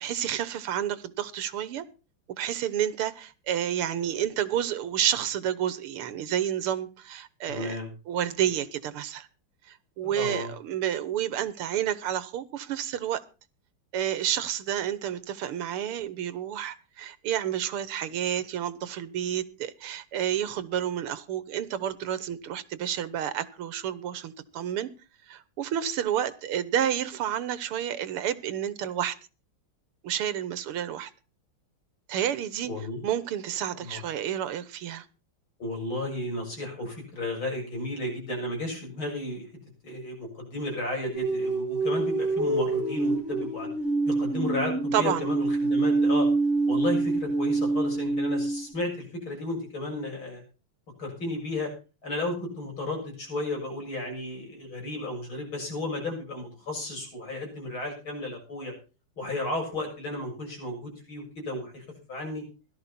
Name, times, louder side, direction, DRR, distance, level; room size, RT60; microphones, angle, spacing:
voice 1, 0.0-1.8 2.4-7.8 8.1-9.3 9.7-13.2 13.9-24.9 25.3-29.2 30.0-31.1 32.1-32.7 33.0-35.1 44.9-45.3, right 10 dB, 85° right, 2.0 m, -30 dB
voice 2, 7.4-7.9 10.0-10.5 32.6-33.0 33.8-34.0 35.6-39.5 39.8-43.7 44.1-46.3 46.7-50.4 51.0-51.7 52.0-58.7 59.2-62.4, left 2 dB, 65° left, 8.0 m, -33 dB
sound 1, 41.1-48.7, right 3 dB, 30° right, 3.7 m, -26 dB
16.5 x 13.0 x 4.3 m
omnidirectional pair, 2.4 m